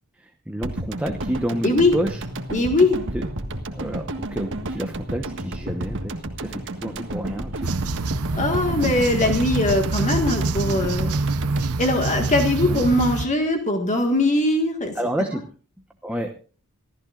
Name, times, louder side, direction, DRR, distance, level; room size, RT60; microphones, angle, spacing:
voice 1, 0.5-2.2 3.1-3.2 3.7-6.1 6.4-7.7 12.7-12.8 14.9-15.4 16.0-16.3, right 1 dB, 5° right, 3 dB, 1.1 m, -29 dB
sound 1, 0.6-13.0 13.3-13.4, right 1 dB, 60° right, 1.6 m, -32 dB
voice 2, 1.6-1.9 2.5-3.0 8.3-11.2 11.8-14.9, left 2 dB, 35° left, 3 dB, 1.8 m, -21 dB
sound 2, 7.6-13.3, right 3 dB, 75° right, 0.9 m, -26 dB
26.5 x 14.0 x 2.5 m, 0.38 s
head